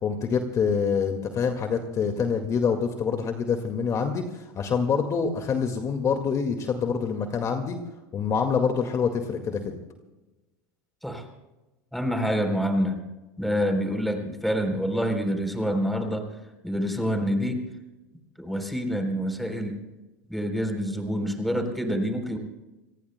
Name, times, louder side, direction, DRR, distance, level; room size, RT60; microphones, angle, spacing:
voice 1, 0.0-7.8 8.1-9.8, left 6 dB, 35° left, 5 dB, 1.9 m, -26 dB
voice 2, 11.9-13.0 13.4-16.3 16.6-17.7 18.4-19.8 20.3-22.4, equal, ahead, 5 dB, 3.7 m, -27 dB
28.5 x 18.5 x 2.2 m, 1.1 s
hypercardioid pair, 100°, 9 cm